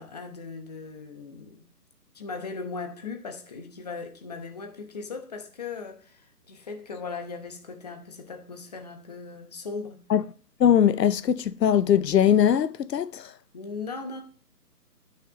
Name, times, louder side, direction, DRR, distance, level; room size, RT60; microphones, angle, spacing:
voice 1, 0.0-1.7 2.1-10.0 13.5-14.2, left 4 dB, 25° left, 0.9 m, -38 dB
voice 2, 10.6-13.3, left 9 dB, 80° left, 0.7 m, -21 dB
13.0 x 6.6 x 2.9 m
hypercardioid pair, 165°, 48 cm